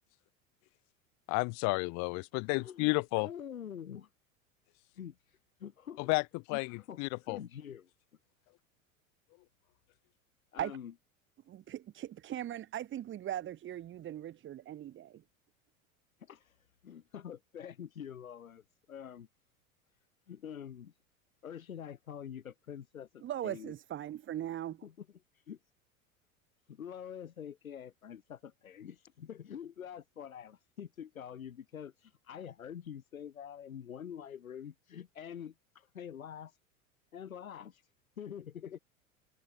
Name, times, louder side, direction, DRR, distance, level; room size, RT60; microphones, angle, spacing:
voice 1, 1.3-3.3 6.1-6.2 6.5-7.4, left 33 dB, 40° left, 0.9 m, -31 dB
voice 2, 2.6-4.1 4.9-6.1 6.5-7.9 10.5-10.9 16.2-19.3 20.3-20.9 21.4-23.7 24.8-24.9 25.3-25.6 26.7-36.6 37.1-37.8 38.2-38.8, left 8 dB, 75° left, 3.6 m, -46 dB
voice 3, 11.5-15.2 23.2-24.9, right 12 dB, 30° right, 1.5 m, -39 dB
figure-of-eight pair, 85°, 42 cm